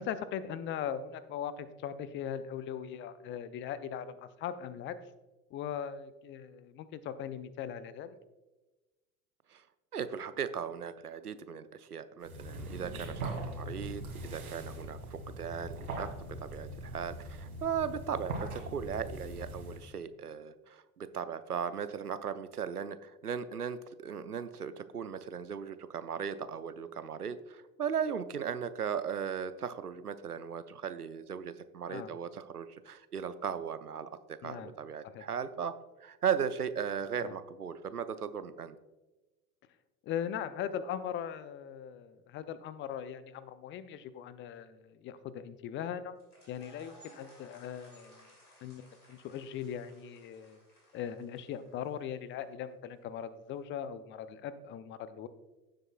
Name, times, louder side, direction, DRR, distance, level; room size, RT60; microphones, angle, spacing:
voice 1, 0.0-5.0 5.5-8.2 31.9-32.1 34.4-34.7 35.0-35.2 37.2-37.3 40.0-46.1 46.5-48.3 48.6-50.6 50.9-55.3, left 9 dB, 25° left, 14 dB, 0.5 m, -39 dB
voice 2, 9.9-14.0 14.3-35.7 36.0-38.8, right 7 dB, 90° right, 13 dB, 0.6 m, -37 dB
sound 1, 12.2-19.9, right 1 dB, 70° right, 2.4 m, -41 dB
sound 2, 46.2-52.2, equal, 80° left, 2.9 m, -60 dB
15.5 x 7.6 x 2.3 m, 1.1 s
figure-of-eight pair, 80°, 45 cm